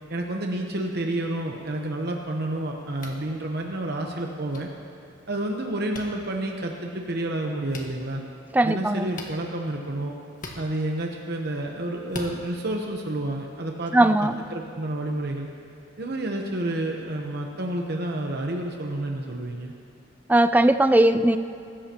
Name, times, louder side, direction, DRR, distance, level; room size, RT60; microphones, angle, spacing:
voice 1, 0.1-4.7 5.3-8.2 8.6-10.1 10.5-15.5 16.0-19.7, right 1 dB, 55° right, 1 dB, 1.0 m, -30 dB
sound 1, 3.0-3.2 4.5-4.6 5.9-6.1 7.7-7.9 9.1-9.4 10.4-10.6 12.1-12.3, left 2 dB, 45° left, 1.5 m, -38 dB
voice 2, 8.5-9.1 13.9-14.4 20.3-21.4, right 1 dB, 10° right, 10 dB, 0.4 m, -19 dB
23.5 x 13.5 x 3.0 m, 2.6 s
head